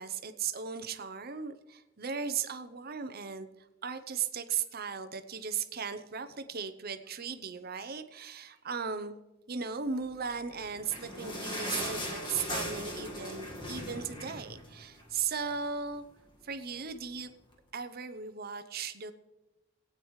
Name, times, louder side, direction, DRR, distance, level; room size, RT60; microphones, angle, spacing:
voice 1, 0.0-9.1 9.5-16.0 16.4-17.3 17.7-19.1, right 6 dB, 50° right, 10 dB, 0.7 m, -37 dB
sound 1, 10.5-15.2 15.6-15.7 15.9-16.1 16.8-16.9, left 1 dB, 25° left, 1.7 m, -38 dB
18.0 x 9.0 x 3.2 m, 0.99 s
head